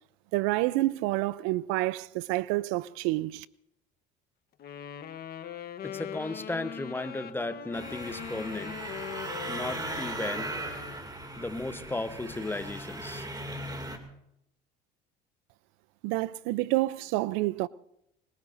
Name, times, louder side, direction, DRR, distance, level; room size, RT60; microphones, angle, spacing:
voice 1, 0.3-3.5 16.0-17.7, right 19 dB, 75° right, 0.6 m, -28 dB
Wind instrument woodwind instrument, 4.6-11.1, left 9 dB, 45° left, 1.2 m, -41 dB
voice 2, 5.8-8.8 9.5-10.6 11.4-13.3, left 2 dB, 10° left, 1.0 m, -35 dB
sound 1, 7.7-14.0, right 2 dB, 20° right, 2.5 m, -38 dB
22.0 x 21.5 x 2.6 m
supercardioid pair, 95°, 21 cm